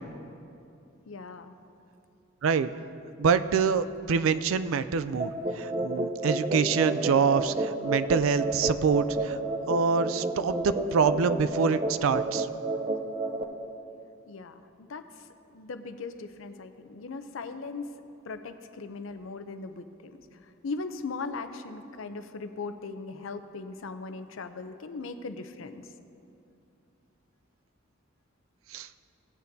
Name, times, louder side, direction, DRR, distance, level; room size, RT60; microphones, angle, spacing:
voice 1, 1.1-1.6 14.3-15.1 15.5-17.9 18.2-20.1 20.6-25.8, left 4 dB, 70° left, 9 dB, 0.6 m, -39 dB
voice 2, 3.2-9.4 9.7-12.5 28.7-28.9, right 5 dB, 75° right, 13 dB, 0.4 m, -26 dB
sound 1, 5.2-13.4, right 2 dB, 25° right, 0.5 m, -30 dB
17.0 x 8.9 x 2.7 m, 2.6 s
head